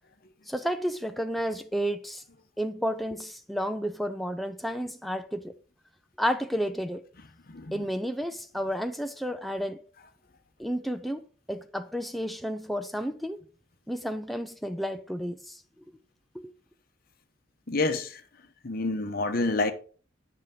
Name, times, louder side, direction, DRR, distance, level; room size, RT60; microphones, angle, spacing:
voice 1, 0.5-2.2 2.6-5.5 6.2-7.0 7.7-9.8 10.6-11.2 11.5-13.4 13.9-15.6 16.3-16.5, equal, ahead, 0.5 m, -31 dB
voice 2, 17.7-18.2 18.6-19.7, left 2 dB, 50° left, 0.9 m, -27 dB
7.9 x 6.6 x 3.7 m
head